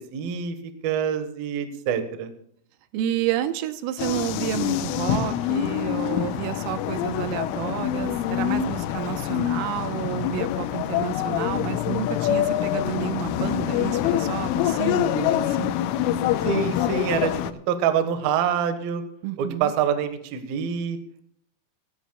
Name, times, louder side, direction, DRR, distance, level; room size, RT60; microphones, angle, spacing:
voice 1, 0.1-0.6 0.8-2.3 16.4-17.3 17.7-19.0 19.4-21.0, right 7 dB, 65° right, 8 dB, 2.5 m, -25 dB
voice 2, 2.9-15.8 19.2-19.7, right 12 dB, 90° right, 10 dB, 3.6 m, -30 dB
sound 1, 4.0-17.5, left 11 dB, 80° left, 3.2 m, -25 dB
26.0 x 13.0 x 2.3 m, 0.67 s
omnidirectional pair, 5.9 m